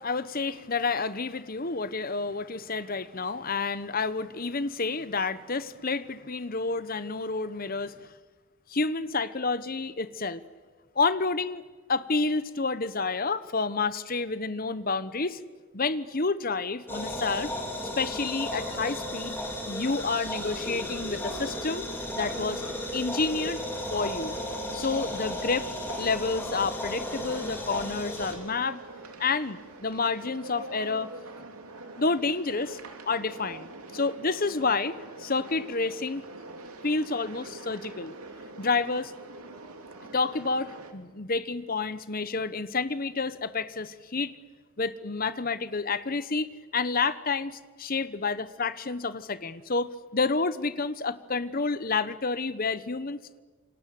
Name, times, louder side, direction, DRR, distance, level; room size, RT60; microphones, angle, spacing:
voice 1, 0.0-8.1 8.7-10.4 10.9-11.6 11.9-15.4 15.7-17.5 18.0-19.4 19.7-21.9 22.1-22.6 22.9-23.6 23.9-24.4 24.7-25.7 26.0-28.8 29.2-31.1 32.0-32.8 33.1-36.2 36.8-38.1 38.6-39.1 40.1-44.3 44.8-46.5 46.7-53.4, left 4 dB, 40° left, 14 dB, 1.0 m, -29 dB
sound 1, 16.9-28.3, left 1 dB, 10° left, 4.3 m, -34 dB
sound 2, 22.2-40.9, right 2 dB, 85° right, 2.8 m, -45 dB
28.0 x 25.5 x 7.8 m, 1.4 s
head